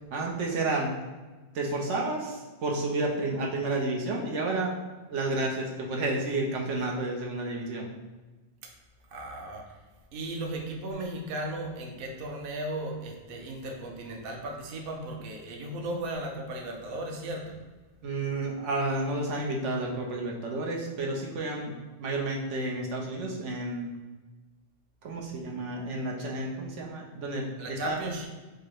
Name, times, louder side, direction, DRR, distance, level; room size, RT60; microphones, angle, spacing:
voice 1, 0.1-0.9 1.5-4.7 5.1-7.9 18.0-21.7 22.0-23.9 25.0-28.0, right 2 dB, 85° right, -1 dB, 1.1 m, -31 dB
voice 2, 9.1-9.8 10.1-17.6 27.6-28.3, right 1 dB, 60° right, 1 dB, 0.8 m, -36 dB
4.6 x 2.1 x 4.5 m, 1.2 s
omnidirectional pair, 1.2 m